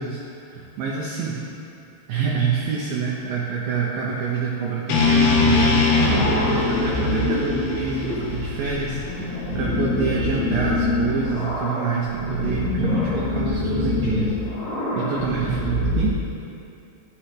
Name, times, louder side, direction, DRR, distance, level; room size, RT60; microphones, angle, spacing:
voice 1, 0.0-1.4 2.1-14.3 14.9-16.2, right 5 dB, 85° right, -4 dB, 2.0 m, -27 dB
sound 1, 4.9-9.0, left 4 dB, 90° left, 4.3 m, -21 dB
sound 2, 5.0-16.1, left 2 dB, 60° left, 3.5 m, -26 dB
12.5 x 10.5 x 3.3 m, 2.6 s
omnidirectional pair, 5.4 m